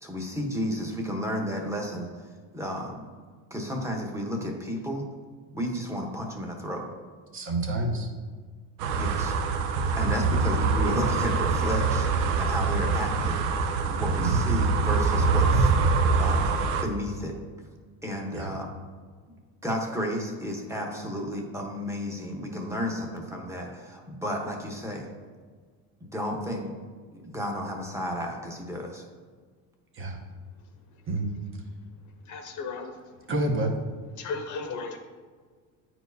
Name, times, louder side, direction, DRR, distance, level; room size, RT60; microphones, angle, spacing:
voice 1, 0.0-2.2 2.5-3.0 3.5-5.1 5.5-6.9 9.0-9.4 10.0-12.1 12.4-13.4 13.9-17.4 18.0-18.7 19.6-25.1 26.0-26.7 27.2-29.0, equal, 5° right, 0 dB, 1.0 m, -32 dB
voice 2, 7.3-8.1 8.8-9.0 14.0-14.4 18.3-18.5 29.9-30.2 31.1-31.3 33.3-33.7, right 2 dB, 30° right, 1 dB, 0.9 m, -28 dB
sound 1, 8.8-16.8, right 4 dB, 75° right, 0.8 m, -24 dB
voice 3, 30.6-31.0 32.0-33.3 34.2-35.0, left 4 dB, 50° left, 5 dB, 0.9 m, -37 dB
9.1 x 4.5 x 2.7 m, 1.5 s
supercardioid pair, 110°, 38 cm